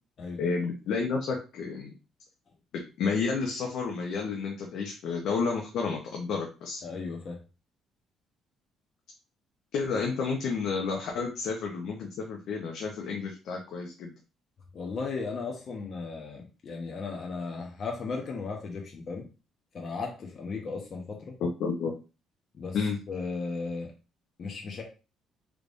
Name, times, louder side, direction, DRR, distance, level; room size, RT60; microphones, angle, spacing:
voice 1, 0.4-1.9 2.7-6.8 9.7-14.1 21.4-21.9 22.7-23.0, left 5 dB, 75° left, 0 dB, 0.7 m, -31 dB
voice 2, 6.8-7.4 14.7-19.3 19.7-21.4 22.5-22.8 23.1-23.9 24.4-24.8, left 4 dB, 45° left, 1 dB, 0.9 m, -36 dB
3.4 x 3.3 x 2.5 m, 0.32 s
cardioid pair, 115°, 0 cm